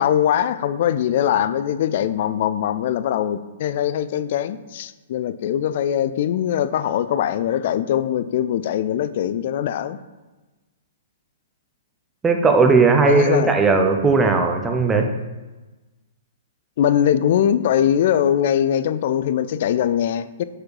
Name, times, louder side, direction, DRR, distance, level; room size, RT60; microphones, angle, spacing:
voice 1, 0.0-10.0 13.0-13.5 16.8-20.4, left 10 dB, 55° left, 13 dB, 0.3 m, -21 dB
voice 2, 12.2-15.1, right 4 dB, 10° right, 4 dB, 0.6 m, -17 dB
4.8 x 4.4 x 4.7 m, 1.2 s
hypercardioid pair, 145°, 0 cm